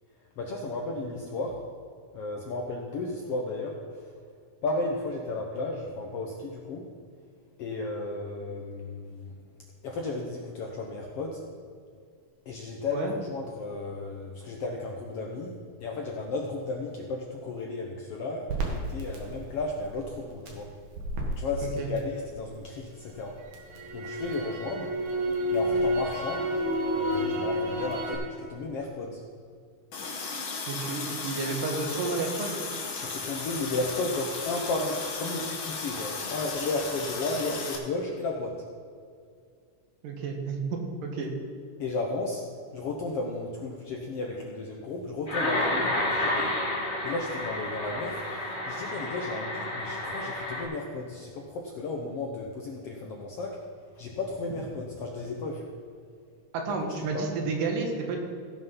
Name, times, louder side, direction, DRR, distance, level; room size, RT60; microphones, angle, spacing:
voice 1, 0.4-1.6 2.1-4.2 4.6-6.8 7.6-9.3 9.8-11.4 12.4-20.7 21.3-23.4 23.9-24.9 25.5-26.5 26.9-29.2 32.9-38.6 41.8-42.4 42.7-46.6 47.0-53.6 53.9-55.7 56.8-57.4, left 3 dB, 70° left, 0 dB, 1.4 m, -34 dB
Crackle, 18.5-22.6 23.0-28.2, right 1 dB, 65° right, 2.9 m, -31 dB
Water tap faucet, 29.9-37.8, left 4 dB, 55° left, 1.5 m, -35 dB
voice 2, 30.7-32.6 40.0-41.3 56.5-58.2, right 4 dB, 85° right, 2 dB, 3.0 m, -31 dB
sound 1, 45.3-50.6, left 1 dB, 20° left, 1.3 m, -30 dB
16.5 x 5.5 x 5.5 m, 2.2 s
omnidirectional pair, 3.7 m